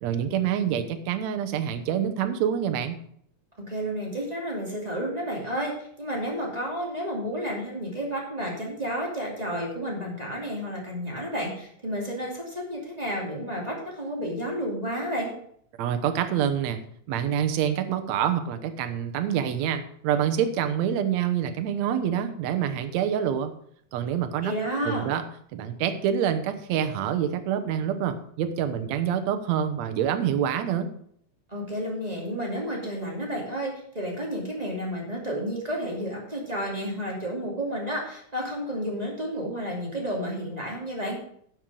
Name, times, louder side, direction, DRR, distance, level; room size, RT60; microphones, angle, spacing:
voice 1, 0.0-3.0 15.8-16.8 17.1-23.5 23.9-24.5 24.8-25.2 25.5-30.9, right 9 dB, 70° right, 9 dB, 2.1 m, -26 dB
voice 2, 3.6-15.3 24.4-25.1 31.5-41.2, equal, 15° right, -2 dB, 2.3 m, -31 dB
10.5 x 6.3 x 6.2 m, 0.65 s
omnidirectional pair, 3.4 m